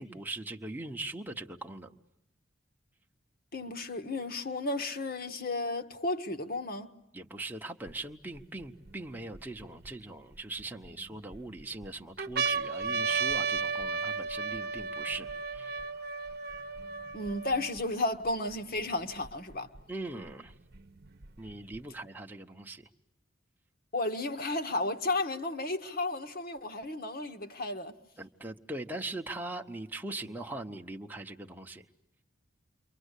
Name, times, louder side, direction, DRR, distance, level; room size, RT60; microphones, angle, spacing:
voice 1, 0.0-1.9 7.1-15.8 19.9-20.5 21.4-22.9 28.2-31.8, right 2 dB, 10° right, 1.0 m, -41 dB
voice 2, 3.5-6.9 17.1-19.7 23.9-27.9, left 2 dB, 50° left, 1.5 m, -33 dB
sound 1, 7.9-8.0 8.6-9.9 10.6-11.4 11.8-11.9 12.2-17.8 18.5-18.6 18.8-19.8 20.7-21.8, right 5 dB, 50° right, 1.0 m, -34 dB
28.5 x 24.5 x 8.3 m
head